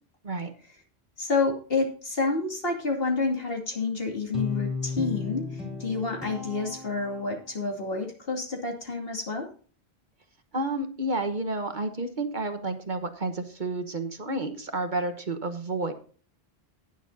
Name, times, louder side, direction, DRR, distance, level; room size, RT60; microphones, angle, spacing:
voice 1, 1.2-9.5, left 4 dB, 60° left, 2 dB, 2.7 m, -29 dB
Guitar, 4.3-7.6, left 4 dB, ahead, 2.9 m, -34 dB
voice 2, 10.5-15.9, right 2 dB, 50° right, 8 dB, 1.3 m, -30 dB
18.5 x 7.2 x 2.7 m, 0.41 s
omnidirectional pair, 1.1 m